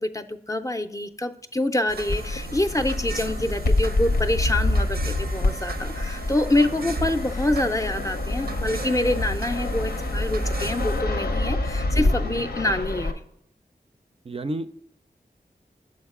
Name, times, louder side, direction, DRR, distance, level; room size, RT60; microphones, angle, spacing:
voice 1, 0.0-13.1, left 1 dB, 20° left, 8 dB, 0.4 m, -26 dB
sound 1, 1.9-11.0, right 3 dB, 90° right, 0.6 m, -37 dB
Fixed-wing aircraft airplane, 2.1-13.1, left 2 dB, 90° left, 0.7 m, -26 dB
voice 2, 11.9-12.4 14.3-14.7, right 2 dB, 40° right, 9 dB, 0.4 m, -32 dB
6.4 x 4.7 x 3.6 m, 0.75 s
wide cardioid pair, 65°, 16 cm